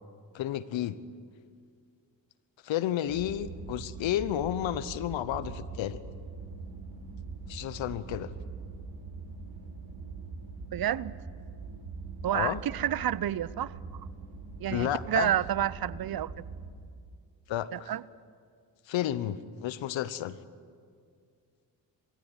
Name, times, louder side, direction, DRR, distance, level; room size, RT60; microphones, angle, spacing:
voice 1, 0.3-1.0 2.6-6.0 7.5-8.3 12.3-12.6 14.7-15.3 17.5-17.9 18.9-20.4, left 12 dB, 75° left, 16 dB, 1.0 m, -31 dB
sound 1, 3.1-16.7, right 4 dB, 75° right, 4.1 m, -42 dB
voice 2, 10.7-11.1 12.2-13.7 14.6-16.3 17.7-18.0, right 11 dB, 50° right, 20 dB, 0.7 m, -29 dB
23.0 x 15.0 x 9.7 m, 2.2 s
supercardioid pair, 45°, 47 cm